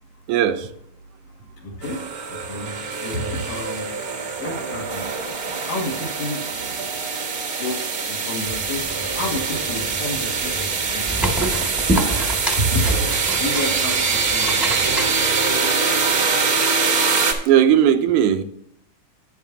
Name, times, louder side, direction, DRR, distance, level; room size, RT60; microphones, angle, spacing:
voice 1, 0.3-0.7 17.5-18.4, right 10 dB, 80° right, 2.1 m, -17 dB
voice 2, 1.6-3.9 4.4-5.2 5.7-6.5 7.6-11.4 12.6-12.9 13.3-15.1, left 1 dB, 75° left, 3.6 m, -30 dB
sound 1, 1.8-17.3, right 5 dB, 50° right, 1.0 m, -23 dB
sound 2, 8.5-15.2, right 1 dB, ahead, 1.0 m, -27 dB
11.0 x 9.3 x 2.8 m
omnidirectional pair, 3.4 m